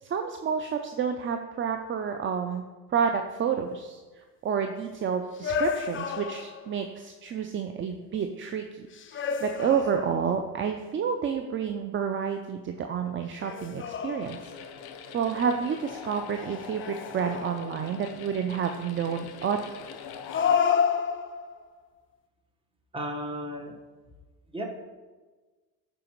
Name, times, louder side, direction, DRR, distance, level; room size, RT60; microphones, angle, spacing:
voice 1, 0.0-4.0 4.4-14.4 15.1-19.6, right 7 dB, 25° right, 6 dB, 0.4 m, -29 dB
sound 1, 5.4-6.8 8.9-10.4 13.4-14.7 16.8-17.9 20.3-21.6, left 7 dB, 25° left, 0.5 m, -29 dB
sound 2, 14.2-20.6, left 7 dB, 50° left, 0.8 m, -43 dB
voice 2, 22.9-23.7 24.5-24.6, equal, 10° right, 2 dB, 1.3 m, -34 dB
11.5 x 4.8 x 3.1 m, 1.3 s
supercardioid pair, 80°, 48 cm